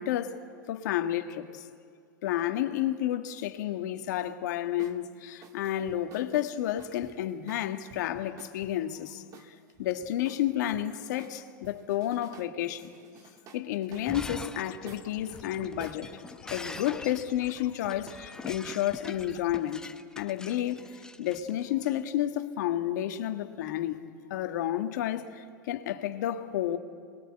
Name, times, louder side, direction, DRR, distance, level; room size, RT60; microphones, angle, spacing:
voice 1, 0.0-1.7 2.2-13.0 13.5-16.1 16.5-19.9 20.2-24.0 24.3-26.8, left 12 dB, 65° left, 1.7 m, -31 dB
sound 1, 4.8-5.0 5.4-8.7 9.3-10.8 11.2-12.5 12.8-16.9, right 4 dB, 35° right, 2.1 m, -51 dB
Shatter, 13.9-22.0, left 3 dB, 5° left, 0.8 m, -44 dB
sound 2, 14.6-19.6, left 12 dB, 45° left, 1.6 m, -51 dB
27.0 x 22.0 x 8.9 m
hypercardioid pair, 120°, 10 cm